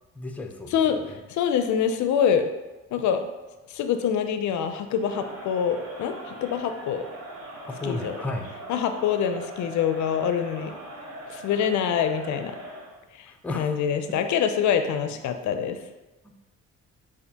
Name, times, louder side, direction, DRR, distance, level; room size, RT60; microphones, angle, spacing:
voice 1, 0.1-1.2 7.7-8.5 13.3-13.8 14.1-14.2 16.2-16.5, left 2 dB, 5° left, 3 dB, 0.4 m, -34 dB
voice 2, 0.7-1.0 1.3-2.4 2.9-3.2 3.7-7.1 7.8-8.2 8.7-10.8 11.3-12.6 13.1-13.3 13.6-15.8, left 8 dB, 70° left, 8 dB, 0.4 m, -25 dB
Crowd, 4.9-13.0, right 1 dB, 55° right, 1.0 m, -41 dB
6.5 x 2.5 x 2.8 m, 1.1 s
cardioid pair, 90°, 30 cm